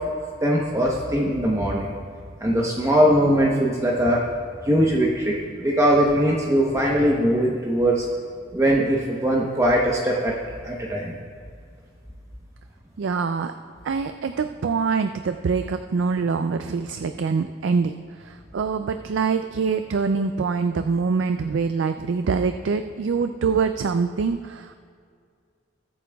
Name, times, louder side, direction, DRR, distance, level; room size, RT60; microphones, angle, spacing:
voice 1, 0.4-1.9 2.4-4.2 4.6-8.0 8.5-10.4 10.6-11.1, equal, 15° right, -3 dB, 0.9 m, -21 dB
voice 2, 13.0-13.5 13.8-17.9 18.2-24.8, right 5 dB, 70° right, 8 dB, 0.4 m, -24 dB
20.0 x 8.5 x 2.3 m, 2.2 s
head